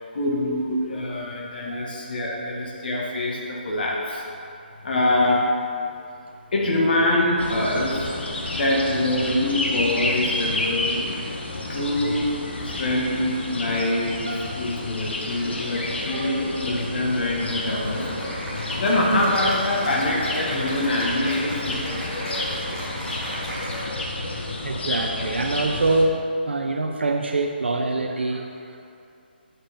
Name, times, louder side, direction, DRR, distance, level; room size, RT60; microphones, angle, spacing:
voice 1, 0.1-4.5 4.8-5.4 5.9-6.0 6.5-8.2 8.5-11.2 11.7-12.3 12.6-18.1 18.8-22.2, left 1 dB, 60° left, -2 dB, 1.4 m, -24 dB
sound 1, 7.4-26.1, left 2 dB, 80° left, 1.3 m, -30 dB
voice 2, 16.1-16.4 24.6-29.0, right 2 dB, 90° right, 2 dB, 0.6 m, -26 dB
Cheering / Applause, 17.4-24.1, equal, 5° left, 2.0 m, -35 dB
7.3 x 5.4 x 5.2 m, 2.5 s
hypercardioid pair, 155°, 6 cm